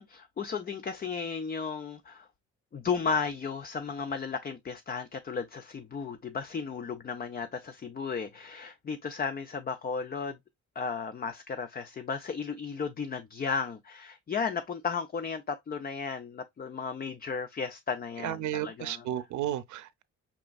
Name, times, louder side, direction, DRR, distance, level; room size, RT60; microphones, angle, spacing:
voice 1, 0.0-2.3 2.7-10.4 10.8-19.1, left 5 dB, 30° left, 0.5 m, -34 dB
voice 2, 18.2-20.0, right 12 dB, 75° right, 0.6 m, -33 dB
5.0 x 3.6 x 2.3 m
cardioid pair, 90°, 30 cm